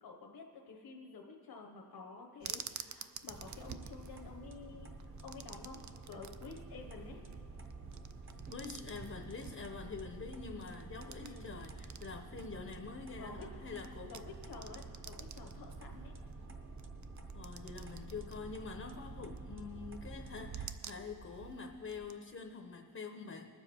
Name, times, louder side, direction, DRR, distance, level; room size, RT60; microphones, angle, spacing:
voice 1, 0.0-4.9 5.2-5.8 6.1-7.2 11.2-11.5 13.2-13.5 14.0-16.1, left 4 dB, 70° left, 2 dB, 1.0 m, -50 dB
sound 1, 2.4-22.2, right 8 dB, 50° right, 0.5 m, -51 dB
sound 2, 3.3-20.7, right 3 dB, 30° right, 0.9 m, -49 dB
voice 2, 8.5-14.1 17.3-23.5, left 4 dB, 40° left, 5 dB, 0.7 m, -46 dB
20.5 x 7.2 x 4.3 m, 2.5 s
wide cardioid pair, 130°, 38 cm